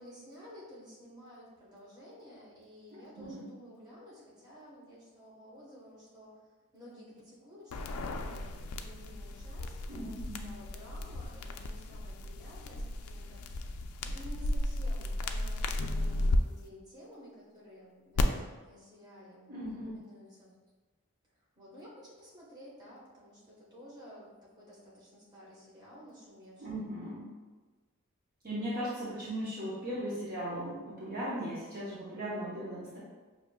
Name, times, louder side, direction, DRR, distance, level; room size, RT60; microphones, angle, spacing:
voice 1, 0.0-6.4 6.7-13.7 14.1-19.5 19.8-20.5 21.5-26.8, equal, 20° right, -7 dB, 1.1 m, -53 dB
voice 2, 2.9-3.4 9.9-10.5 19.5-20.0 26.6-27.3 28.4-33.0, equal, 40° right, -9 dB, 0.8 m, -38 dB
sound 1, 7.7-16.4 18.2-18.3, left 2 dB, 80° left, 0.3 m, -35 dB
5.8 x 2.8 x 2.2 m, 1.3 s
head